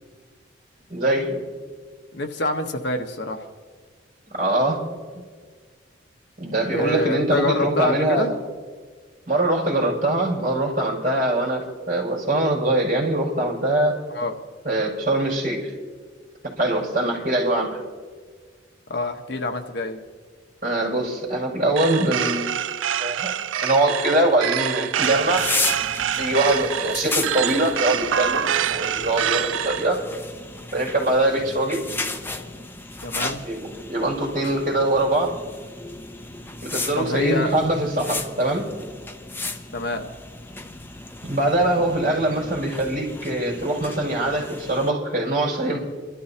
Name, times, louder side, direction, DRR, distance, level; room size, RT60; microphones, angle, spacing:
voice 1, 0.9-1.4 4.3-4.8 6.4-8.4 9.3-14.0 14.6-15.7 16.4-17.8 20.6-22.5 23.0-23.3 23.6-25.5 26.2-30.0 30.7-31.8 33.4-33.6 33.9-35.4 36.6-38.7 41.2-45.8, right 1 dB, 45° right, -5 dB, 5.8 m, -23 dB
voice 2, 2.1-3.5 6.7-8.3 14.1-14.4 18.9-20.0 33.0-33.4 36.9-37.5 39.7-40.1, left 2 dB, 60° left, 4 dB, 1.2 m, -26 dB
sound 1, 21.8-29.9, right 9 dB, 85° right, 0.4 m, -26 dB
sound 2, 25.0-44.9, left 3 dB, 10° left, 0.6 m, -34 dB
28.5 x 13.5 x 2.9 m, 1.5 s
head